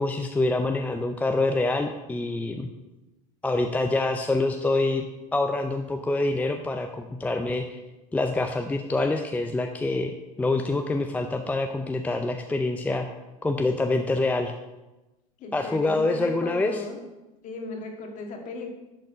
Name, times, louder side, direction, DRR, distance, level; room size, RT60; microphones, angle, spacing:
voice 1, 0.0-2.7 3.4-5.1 5.3-7.8 8.1-13.1 13.4-14.5 15.5-16.8, left 2 dB, 10° left, 5 dB, 0.5 m, -26 dB
voice 2, 15.4-17.0 17.4-18.7, left 3 dB, 45° left, 3 dB, 1.8 m, -36 dB
10.5 x 4.2 x 5.0 m, 1.0 s
hypercardioid pair, 100°, 18 cm